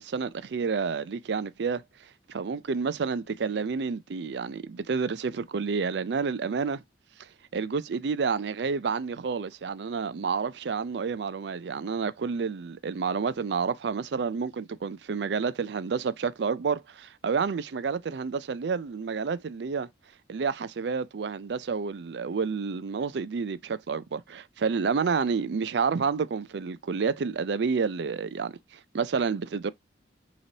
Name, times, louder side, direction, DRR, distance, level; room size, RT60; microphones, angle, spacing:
voice 1, 0.0-1.8 2.3-6.8 7.5-19.9 20.3-29.7, right 5 dB, 65° right, 0.4 m, -29 dB
5.9 x 3.0 x 2.7 m
head